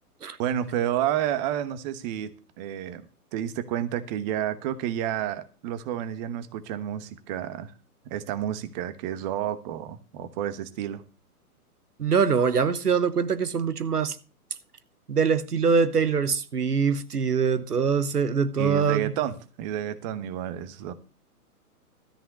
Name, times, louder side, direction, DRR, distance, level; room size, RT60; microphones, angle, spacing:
voice 1, 0.4-2.3 2.6-3.0 3.3-7.7 8.1-11.0 18.6-20.9, right 11 dB, 30° right, 1.1 m, -30 dB
voice 2, 12.0-14.2 15.1-19.1, right 6 dB, 80° right, 1.1 m, -23 dB
13.5 x 5.6 x 8.1 m
figure-of-eight pair, 120°, 46 cm